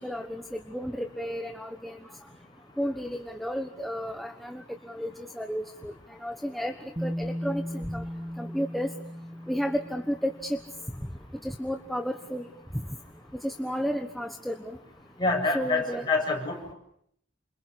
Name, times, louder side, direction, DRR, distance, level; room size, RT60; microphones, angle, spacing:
voice 1, 0.0-2.0 2.8-5.9 6.2-6.7 7.0-8.0 8.4-8.9 9.5-10.6 11.4-12.5 13.4-14.8 15.5-16.0, equal, ahead, 5 dB, 1.2 m, -32 dB
Bass guitar, 7.0-10.9 12.0-12.1, equal, 20° right, 2.1 m, -37 dB
voice 2, 15.2-16.7, left 3 dB, 25° left, 1 dB, 8.0 m, -27 dB
29.5 x 28.0 x 7.0 m, 0.69 s
head